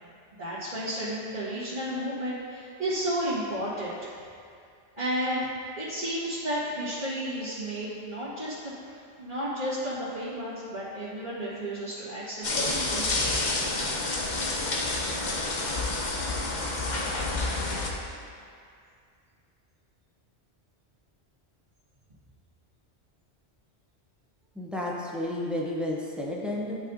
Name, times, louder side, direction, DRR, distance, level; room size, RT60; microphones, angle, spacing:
voice 1, 0.4-4.1 5.0-5.5 5.8-13.4, equal, 45° right, -14 dB, 1.9 m, -32 dB
sound 1, 12.4-17.9, left 2 dB, 45° left, 0.8 m, -29 dB
voice 2, 24.6-26.8, left 1 dB, ahead, -3 dB, 0.6 m, -31 dB
11.5 x 4.2 x 2.7 m, 2.3 s
omnidirectional pair, 1.1 m